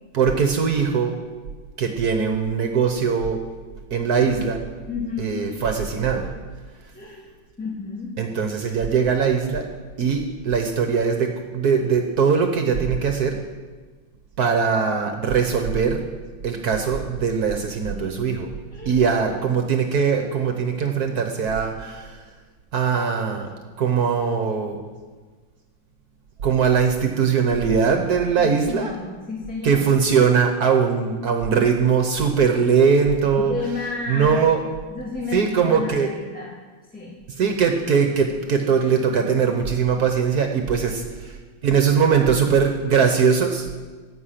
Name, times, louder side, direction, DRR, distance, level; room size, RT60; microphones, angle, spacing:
voice 1, 0.1-1.1 1.8-3.4 3.9-4.6 5.2-6.3 8.2-9.7 10.0-13.4 14.4-16.0 16.4-18.5 18.8-22.2 22.7-24.8 26.4-28.9 29.6-33.5 34.1-34.6 35.3-36.1 37.4-41.4 41.6-43.7, right 6 dB, 60° right, 5 dB, 1.4 m, -21 dB
voice 2, 4.9-5.3 6.9-7.2 7.6-8.1 17.9-18.4 18.7-19.0 28.4-29.9 33.4-34.4 34.9-36.5 36.9-37.2, left 4 dB, 5° left, -5 dB, 2.0 m, -31 dB
15.0 x 8.3 x 5.8 m, 1.4 s
omnidirectional pair, 2.0 m